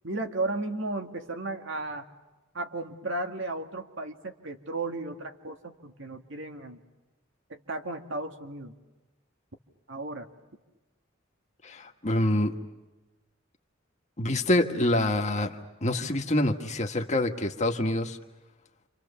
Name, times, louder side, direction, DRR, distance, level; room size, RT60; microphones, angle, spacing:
voice 1, 0.0-2.1 2.5-6.8 7.5-8.7 9.9-10.3, right 2 dB, 70° right, 5 dB, 2.0 m, -34 dB
voice 2, 11.6-12.6 14.2-18.2, left 1 dB, 35° left, 4 dB, 1.7 m, -26 dB
29.5 x 26.5 x 7.1 m, 1.1 s
head